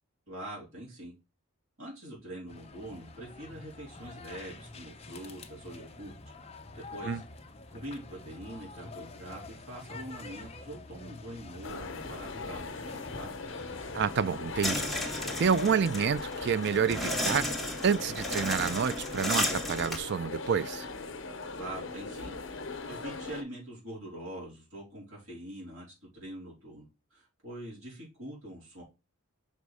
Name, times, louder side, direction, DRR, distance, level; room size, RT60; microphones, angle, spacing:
voice 1, 0.3-1.1 1.8-6.1 6.8-7.2 7.7-13.3 21.6-28.8, right 1 dB, 65° right, 4.1 m, -44 dB
sound 1, 2.5-15.8, left 3 dB, 30° left, 0.7 m, -47 dB
sound 2, 11.6-23.4, left 3 dB, 55° left, 0.9 m, -40 dB
voice 2, 13.9-17.5 17.8-20.9, right 6 dB, 50° right, 0.4 m, -29 dB
sound 3, 14.6-20.0, left 1 dB, ahead, 0.9 m, -34 dB
6.0 x 4.0 x 4.8 m
head